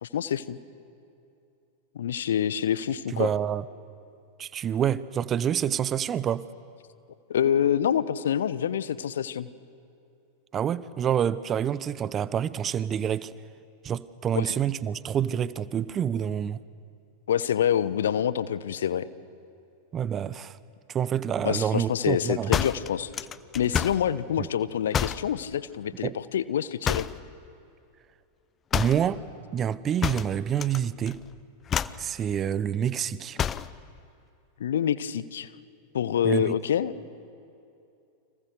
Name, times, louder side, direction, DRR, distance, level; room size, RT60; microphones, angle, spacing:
voice 1, 0.0-0.6 1.9-3.3 7.3-9.5 14.3-14.4 17.3-19.1 21.4-23.1 23.5-27.1 34.6-35.5 35.9-36.9, left 9 dB, 65° left, 16 dB, 1.0 m, -26 dB
voice 2, 3.1-3.6 4.4-6.4 10.5-13.3 13.8-16.6 19.9-20.6 20.9-22.5 24.4-24.5 26.0-26.1 28.7-29.2 29.5-31.2 32.0-33.4 36.2-36.6, right 9 dB, 25° right, 18 dB, 0.8 m, -27 dB
sound 1, 22.5-24.1 24.9-25.3 26.8-27.3 28.7-29.1 30.0-30.8 31.1-31.3 31.7-32.1 33.4-33.8, left 8 dB, 25° left, 0.7 m, -28 dB
29.5 x 26.5 x 6.8 m, 2.6 s
figure-of-eight pair, 90°, 0 cm